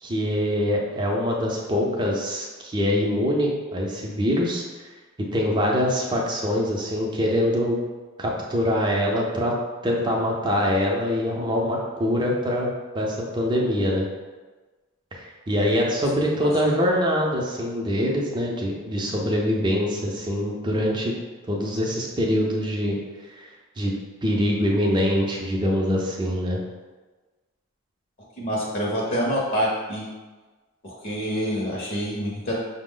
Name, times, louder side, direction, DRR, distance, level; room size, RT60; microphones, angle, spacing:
voice 1, 0.0-4.6 5.3-7.8 8.2-9.5 9.8-14.1 15.2-21.1 21.5-23.0 23.3-23.5 23.8-23.9 24.2-26.6, equal, 20° right, -2 dB, 0.5 m, -24 dB
voice 2, 28.4-30.1 30.8-32.5, equal, 40° left, -4 dB, 0.7 m, -26 dB
5.6 x 2.0 x 3.8 m, 1.3 s
head